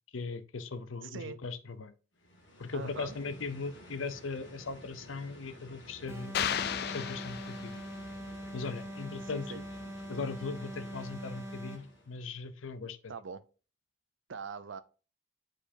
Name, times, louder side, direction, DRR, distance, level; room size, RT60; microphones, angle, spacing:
voice 1, 0.1-1.9 2.6-6.4 6.9-7.7 8.5-9.6 10.1-13.1, left 4 dB, 85° left, 0.7 m, -39 dB
voice 2, 1.0-1.4 2.7-3.2 9.2-9.6 13.1-13.4 14.3-14.8, right 5 dB, 75° right, 0.6 m, -42 dB
sound 1, 2.1-12.2, equal, 70° left, 2.0 m, -53 dB
sound 2, 6.1-12.0, right 1 dB, 15° right, 0.7 m, -43 dB
sound 3, 6.3-8.1, left 8 dB, 50° left, 0.4 m, -34 dB
8.8 x 4.9 x 2.7 m
head